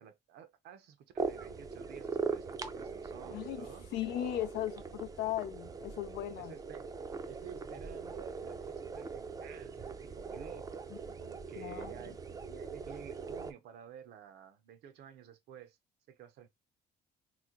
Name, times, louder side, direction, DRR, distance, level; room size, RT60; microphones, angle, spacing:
voice 1, 0.0-3.8 6.4-6.9 7.3-10.9 11.2-15.8 16.1-16.5, right 8 dB, 75° right, 0.7 m, -52 dB
sound 1, 1.2-13.5, right 4 dB, 20° right, 0.4 m, -41 dB
voice 2, 3.3-3.7 3.9-6.5 11.6-11.9, left 13 dB, 80° left, 0.5 m, -37 dB
3.1 x 2.1 x 3.7 m
cardioid pair, 110°, 17 cm